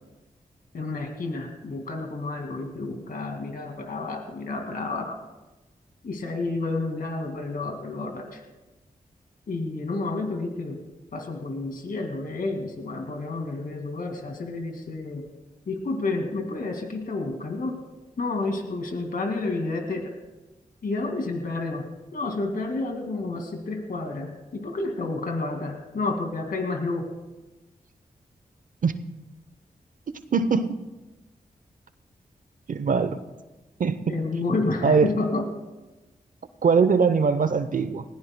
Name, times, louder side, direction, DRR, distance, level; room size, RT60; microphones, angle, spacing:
voice 1, 0.7-5.2 6.0-8.4 9.5-10.8 11.1-15.3 15.7-17.8 18.2-20.1 20.8-21.9 22.1-27.1 34.1-35.5, left 3 dB, 70° left, 3 dB, 2.1 m, -30 dB
voice 2, 30.3-30.7 32.7-33.2 33.8-34.0 34.8-35.1 36.6-38.0, right 5 dB, 65° right, 12 dB, 0.8 m, -21 dB
19.5 x 16.5 x 2.2 m, 1.1 s
cardioid pair, 40°, 15 cm